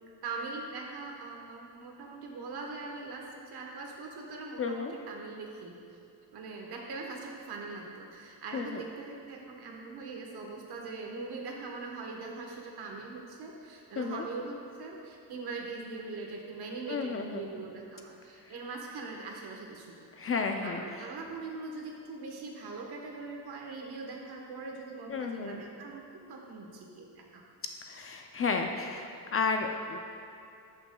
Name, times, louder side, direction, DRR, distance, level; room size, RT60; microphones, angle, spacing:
voice 1, 0.2-5.7 6.3-20.1 20.6-27.4, right 3 dB, 65° right, 0 dB, 1.3 m, -41 dB
voice 2, 4.6-4.9 8.5-8.8 14.0-14.2 16.9-17.4 20.2-20.8 25.1-25.6 27.9-30.0, left 4 dB, 35° left, 4 dB, 0.4 m, -32 dB
13.0 x 5.9 x 2.3 m, 2.8 s
cardioid pair, 135°, 41 cm